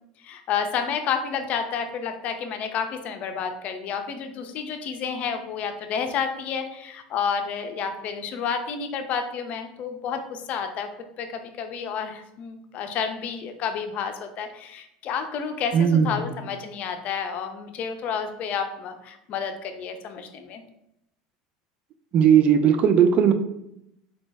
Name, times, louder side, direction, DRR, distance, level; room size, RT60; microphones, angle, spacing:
voice 1, 0.2-10.9 11.2-20.6, left 6 dB, 50° left, 7 dB, 0.5 m, -30 dB
voice 2, 15.7-16.2 22.1-23.3, right 8 dB, 50° right, 9 dB, 0.4 m, -17 dB
3.9 x 2.0 x 3.3 m, 0.80 s
hypercardioid pair, 90°, 3 cm